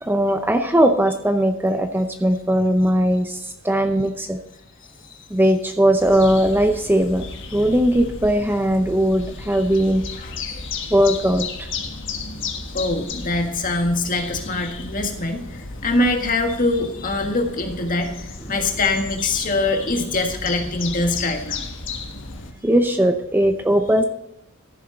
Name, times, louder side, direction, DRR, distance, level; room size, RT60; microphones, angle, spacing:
voice 1, 0.0-4.4 5.3-7.2 7.5-10.0 10.9-11.7 18.5-18.6 22.6-24.0, equal, 10° right, 6 dB, 0.6 m, -19 dB
sound 1, 6.0-22.5, left 4 dB, 60° left, 1.4 m, -34 dB
voice 2, 12.7-21.6, left 2 dB, 40° left, 3 dB, 1.7 m, -23 dB
14.0 x 7.2 x 3.8 m, 0.84 s
head